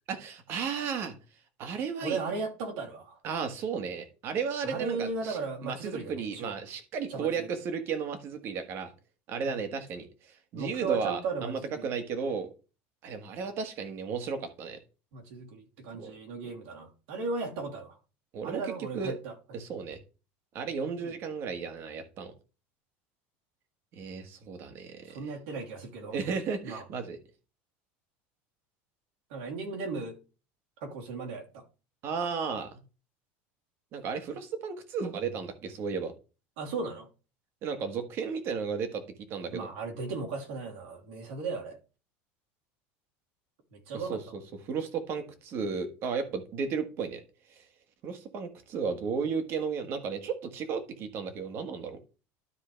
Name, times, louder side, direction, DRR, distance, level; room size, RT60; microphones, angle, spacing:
voice 1, 0.1-1.1 1.6-2.2 3.2-8.9 9.3-10.1 10.5-12.5 13.0-14.8 16.0-16.1 18.3-18.6 18.9-19.1 19.5-20.0 20.5-22.3 23.9-25.3 26.1-27.2 32.0-32.8 33.9-36.1 37.6-39.0 39.3-39.7 43.9-47.2 47.6-47.7 48.0-52.0, right 5 dB, 40° right, 1.5 m, -34 dB
voice 2, 2.0-3.2 4.6-6.5 7.1-7.5 9.4-9.7 10.6-12.0 15.1-18.0 18.4-19.3 21.0-21.1 25.1-26.2 26.6-26.8 29.3-30.2 30.8-31.6 36.6-37.1 39.5-41.8 43.7-44.4, right 4 dB, 80° right, 3.1 m, -36 dB
12.5 x 4.6 x 3.4 m
cardioid pair, 160°, 6 cm